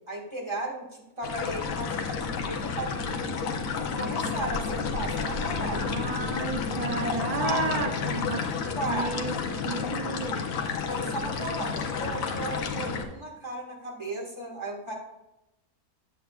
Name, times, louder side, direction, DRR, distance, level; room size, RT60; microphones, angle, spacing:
voice 1, 0.0-3.4 3.9-6.0 7.4-7.6 8.3-8.5 8.7-9.1 10.9-14.9, right 1 dB, 20° right, -2 dB, 1.5 m, -35 dB
sound 1, 1.2-13.0, left 5 dB, 70° left, 1.1 m, -31 dB
voice 2, 5.8-8.4 8.9-10.7, right 3 dB, 60° right, 3 dB, 0.4 m, -33 dB
9.2 x 7.3 x 2.3 m, 0.92 s
omnidirectional pair, 1.5 m